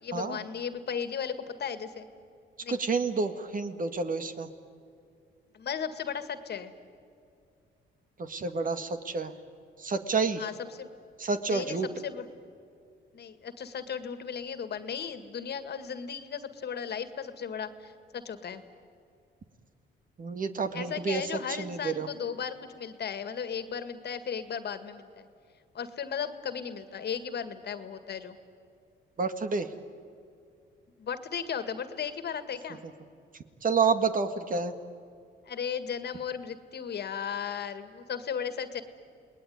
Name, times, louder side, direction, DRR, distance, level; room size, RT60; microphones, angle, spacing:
voice 1, 0.0-2.1 2.6-2.8 5.5-6.7 10.4-10.9 11.5-11.8 12.0-12.3 13.1-18.6 20.7-25.3 25.7-28.4 31.0-32.8 35.5-38.8, left 7 dB, 55° left, 11 dB, 2.0 m, -36 dB
voice 2, 2.7-4.5 8.2-9.3 9.8-10.4 11.2-11.9 20.2-21.2 21.5-22.1 29.2-29.7 33.6-34.7, right 4 dB, 45° right, 9 dB, 1.9 m, -29 dB
29.0 x 20.0 x 9.5 m, 2.4 s
cardioid pair, 90°, 20 cm